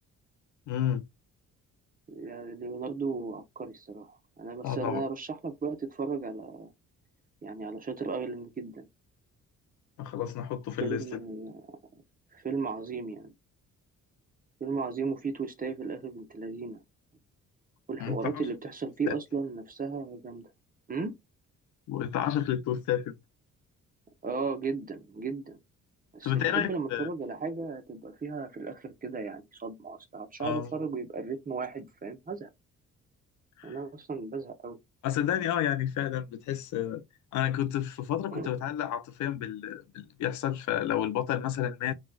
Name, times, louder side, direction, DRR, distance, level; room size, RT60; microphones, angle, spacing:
voice 1, 0.7-1.0 4.6-5.0 10.0-11.2 18.0-18.2 19.1-19.2 21.9-23.1 26.2-27.1 30.4-30.7 33.6-33.8 35.0-37.0 37.3-41.9, left 11 dB, 75° left, 0.6 m, -30 dB
voice 2, 2.1-6.7 7.4-8.9 10.8-11.7 12.3-13.3 14.6-16.8 17.9-20.5 20.9-21.1 24.2-25.6 26.1-32.5 33.6-34.8 38.3-38.5, right 4 dB, 30° right, 0.9 m, -35 dB
4.0 x 2.3 x 2.3 m
cardioid pair, 90°, 30 cm